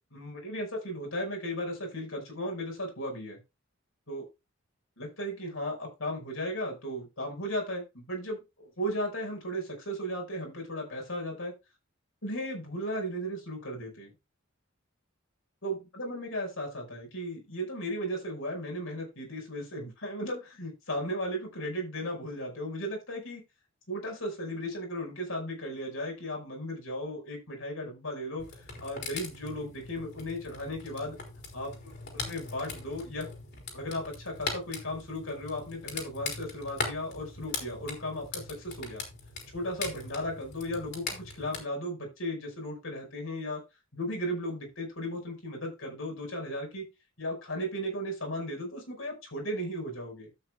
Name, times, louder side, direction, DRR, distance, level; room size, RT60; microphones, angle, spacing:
voice 1, 0.1-3.4 4.1-4.3 5.0-11.5 12.2-14.1 15.6-23.4 23.9-28.5 28.8-31.2 31.5-33.3 33.7-39.0 39.5-43.6 43.9-46.8 47.2-50.3, equal, 80° left, 1 dB, 5.4 m, -36 dB
sound 1, 28.4-41.6, left 4 dB, 55° left, 3.8 m, -40 dB
12.5 x 8.6 x 2.4 m, 0.25 s
head